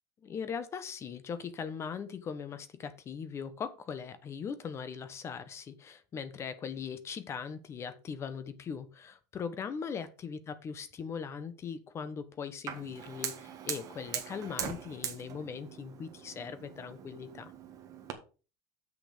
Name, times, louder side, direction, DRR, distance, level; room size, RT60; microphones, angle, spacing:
voice 1, 0.2-17.5, left 6 dB, 25° left, 0.9 m, -40 dB
Fire, 12.7-18.1, right 8 dB, 30° right, 1.5 m, -41 dB
7.7 x 6.3 x 5.0 m
supercardioid pair, 150°, 11 cm